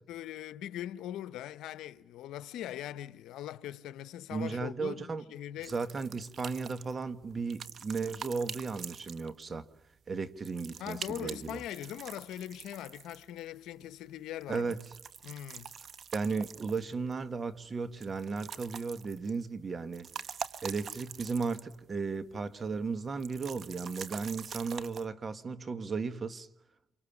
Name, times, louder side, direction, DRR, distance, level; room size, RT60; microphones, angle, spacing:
voice 1, 0.1-5.7 10.8-14.7 15.2-15.8, left 12 dB, 85° left, 1.0 m, -41 dB
voice 2, 4.3-5.2 5.6-9.7 10.1-11.6 14.5-14.8 16.1-20.1 20.6-26.5, right 4 dB, 35° right, 1.7 m, -35 dB
sound 1, 5.6-9.6 10.4-13.5 14.4-17.1 18.0-19.4 19.8-21.8 22.1-22.2 23.2-25.0, right 7 dB, 55° right, 1.2 m, -45 dB
28.0 x 24.5 x 7.2 m
cardioid pair, 90°, 0 cm